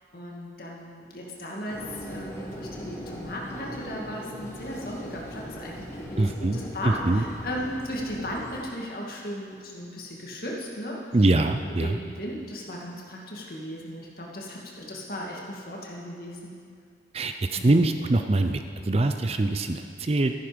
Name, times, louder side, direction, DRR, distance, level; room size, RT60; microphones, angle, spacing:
voice 1, 0.1-11.0 11.8-16.6 17.6-17.8, equal, 55° left, -2 dB, 2.1 m, -36 dB
sound 1, 1.7-8.6, equal, 15° left, 1.4 m, -40 dB
voice 2, 6.2-6.6 6.8-7.2 11.1-12.0 17.1-20.3, right 2 dB, 35° right, 7 dB, 0.5 m, -23 dB
13.5 x 10.5 x 5.1 m, 2.2 s
head